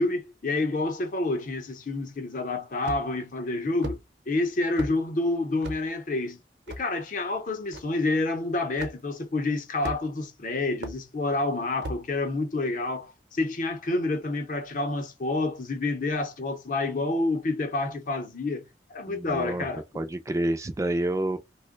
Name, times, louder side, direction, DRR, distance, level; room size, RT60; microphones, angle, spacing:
voice 1, 0.0-4.0 4.3-6.4 6.8-18.6 18.9-19.8, left 2 dB, 50° left, 0.7 m, -28 dB
sound 1, 2.8-3.2 3.8-4.0 4.8-5.0 5.6-5.8 6.7-6.8 7.7-7.8 8.8-9.0 9.8-10.2 10.8-11.0 11.8-12.0, right 1 dB, 80° right, 0.8 m, -35 dB
voice 2, 19.1-19.7 19.9-21.4, right 1 dB, 15° right, 0.3 m, -28 dB
2.9 x 2.1 x 3.6 m
head